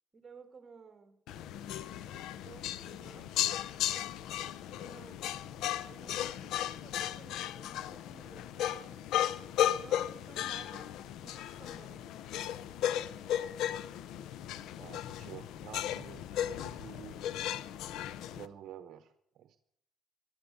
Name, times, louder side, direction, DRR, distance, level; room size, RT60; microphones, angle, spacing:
voice 1, 0.1-1.2 2.4-3.5 4.7-5.2 5.8-9.1 9.8-12.1, right 4 dB, 30° right, 9 dB, 2.9 m, -55 dB
sound 1, 1.3-18.5, left 11 dB, 80° left, 0.8 m, -36 dB
voice 2, 14.8-17.3 18.2-19.6, right 10 dB, 65° right, 11 dB, 1.0 m, -50 dB
15.5 x 11.5 x 7.0 m, 0.76 s
cardioid pair, 95°, 0 cm